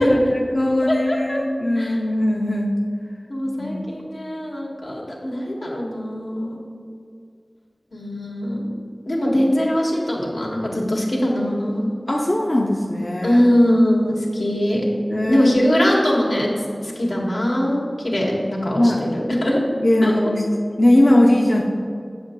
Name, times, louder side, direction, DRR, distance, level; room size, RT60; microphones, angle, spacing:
voice 1, 0.0-2.8 3.6-3.8 12.1-13.4 15.1-15.5 18.8-19.0 19.8-20.4 20.8-21.6, left 1 dB, 40° left, -2 dB, 0.6 m, -19 dB
voice 2, 0.9-1.4 1.8-2.0 3.3-6.6 7.9-8.7 9.1-11.9 13.2-14.8 15.3-16.5 16.8-19.6 20.0-20.1, equal, 75° left, -3 dB, 1.7 m, -21 dB
7.8 x 7.2 x 3.7 m, 2.4 s
wide cardioid pair, 60°, 0 cm